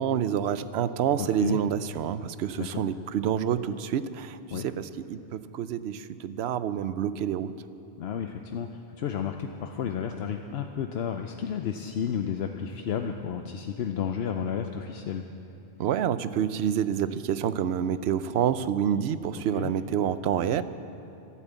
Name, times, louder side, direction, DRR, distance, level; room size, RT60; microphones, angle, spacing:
voice 1, 0.0-7.5 15.8-20.6, right 9 dB, 80° right, 14 dB, 0.8 m, -28 dB
voice 2, 1.2-1.6 2.6-2.8 4.5-4.7 8.0-15.2 19.4-19.7, left 8 dB, 75° left, 5 dB, 0.9 m, -32 dB
12.0 x 11.5 x 8.1 m, 3.0 s
omnidirectional pair, 1.1 m